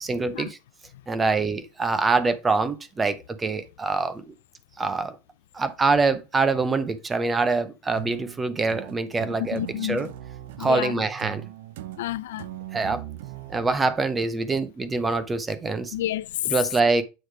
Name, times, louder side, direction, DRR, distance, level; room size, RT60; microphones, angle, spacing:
voice 1, 0.0-0.6 1.1-4.3 4.8-5.2 5.5-10.1 10.6-11.5 12.7-13.0 13.5-15.9 16.5-17.0, right 3 dB, 10° right, 0.6 m, -25 dB
sound 1, 7.9-13.8, right 14 dB, 70° right, 0.6 m, -39 dB
voice 2, 9.4-10.1 10.6-11.0 12.0-12.5 15.9-16.5, left 13 dB, 85° left, 0.4 m, -30 dB
8.4 x 3.2 x 4.6 m
supercardioid pair, 170°, 0 cm